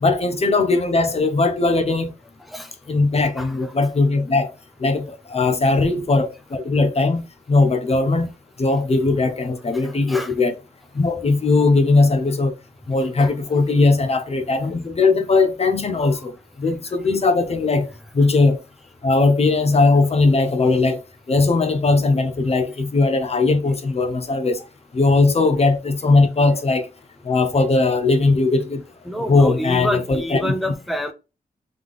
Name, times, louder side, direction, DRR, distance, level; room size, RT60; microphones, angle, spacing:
voice 1, 0.0-2.2 2.9-4.5 4.8-8.3 8.6-10.6 10.9-12.5 12.9-16.3 16.6-18.6 19.0-21.0 21.3-24.6 24.9-26.9 27.2-28.8 29.2-30.5, left 3 dB, 45° left, 0.8 m, -19 dB
voice 2, 9.8-10.3 13.2-13.3 29.1-31.1, equal, ahead, 0.6 m, -27 dB
3.8 x 3.3 x 3.4 m
cardioid pair, 85°, 15 cm